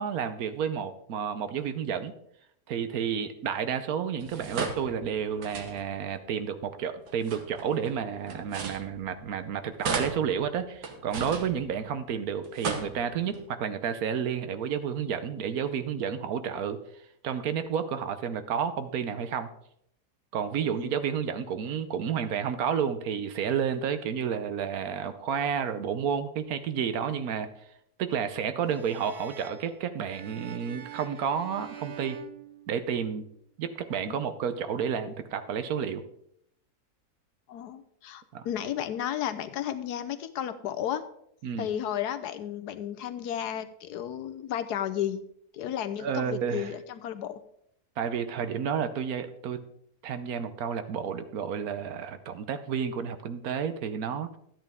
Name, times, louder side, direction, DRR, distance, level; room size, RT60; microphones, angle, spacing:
voice 1, 0.0-2.1 2.7-16.8 17.2-19.5 20.3-27.5 28.0-32.2 32.7-33.3 33.6-36.0 38.3-38.4 41.4-41.7 46.0-46.7 48.0-49.6 50.0-54.4, right 7 dB, 70° right, 10 dB, 1.2 m, -31 dB
sound 1, 4.2-6.1 7.0-9.4 9.8-12.1 12.4-13.4, right 4 dB, 85° right, 1.8 m, -36 dB
sound 2, 28.6-33.2, right 10 dB, 55° right, 0.9 m, -46 dB
voice 2, 37.5-41.0 41.6-45.2 45.5-47.3, left 10 dB, 85° left, 11 dB, 1.3 m, -33 dB
13.0 x 8.9 x 3.5 m, 0.72 s
omnidirectional pair, 1.7 m